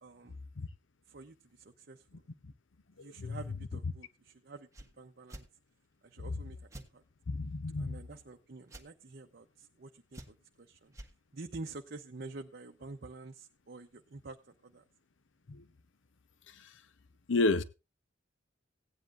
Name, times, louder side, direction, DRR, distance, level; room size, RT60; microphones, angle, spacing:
voice 1, 0.0-0.5 1.1-2.2 3.0-5.5 6.0-7.0 7.8-11.0 11.3-14.8, right 3 dB, 55° right, 0.7 m, -48 dB
voice 2, 3.0-3.4 6.3-6.4 7.3-8.0 15.5-15.6 16.5-16.7 17.3-17.6, left 3 dB, 80° left, 0.7 m, -32 dB
sound 1, 4.7-4.9 5.3-5.5 6.7-6.9 8.7-8.9 10.1-10.5 10.9-11.1, right 1 dB, 15° right, 1.4 m, -48 dB
17.0 x 9.8 x 2.5 m
head